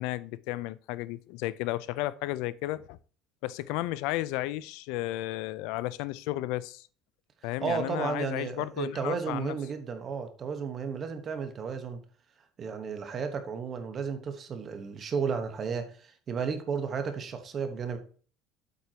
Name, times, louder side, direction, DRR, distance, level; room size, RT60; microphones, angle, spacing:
voice 1, 0.0-3.0 3.4-6.9 7.4-9.5, left 16 dB, 75° left, 0.5 m, -33 dB
voice 2, 7.6-12.0 12.6-18.0, right 6 dB, 35° right, 1.2 m, -33 dB
8.3 x 7.9 x 2.9 m
cardioid pair, 140°, 0 cm